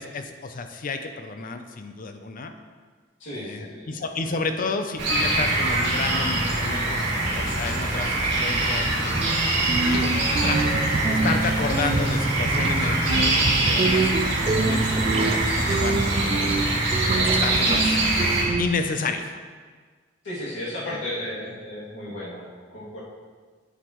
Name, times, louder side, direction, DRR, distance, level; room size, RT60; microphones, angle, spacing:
voice 1, 0.0-2.5 3.3-9.2 9.8-14.1 14.5-16.8 17.2-19.3, left 3 dB, 45° left, 7 dB, 0.5 m, -31 dB
voice 2, 3.2-4.0 4.6-4.7 10.4-10.7 16.3-16.5 20.2-23.0, left 1 dB, 80° left, -8 dB, 2.5 m, -34 dB
sound 1, 5.0-18.4, right 2 dB, 65° right, 2.1 m, -24 dB
sound 2, 9.0-18.7, right 3 dB, 30° right, 0.3 m, -26 dB
8.1 x 7.7 x 3.1 m, 1.5 s
head